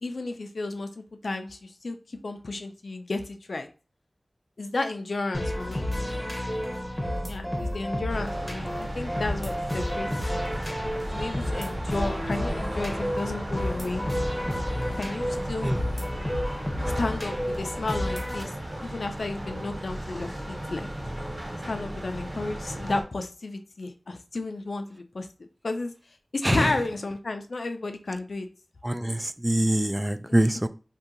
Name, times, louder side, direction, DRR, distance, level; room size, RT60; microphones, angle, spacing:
voice 1, 0.0-3.7 4.6-5.9 7.2-10.1 11.1-14.0 15.0-15.7 16.9-18.5 18.8-20.9 21.7-25.3 25.6-25.9 26.3-28.5 30.3-30.4, left 2 dB, 85° left, 7 dB, 0.5 m, -32 dB
sound 1, 5.3-18.4, left 1 dB, 15° left, 0.9 m, -31 dB
sound 2, 8.1-23.0, right 1 dB, 55° right, 1.3 m, -36 dB
sound 3, 8.6-17.2, equal, 90° right, 0.7 m, -42 dB
voice 2, 28.8-30.7, right 1 dB, 20° right, 11 dB, 0.3 m, -24 dB
2.7 x 2.4 x 3.7 m, 0.34 s
wide cardioid pair, 40°, 0 cm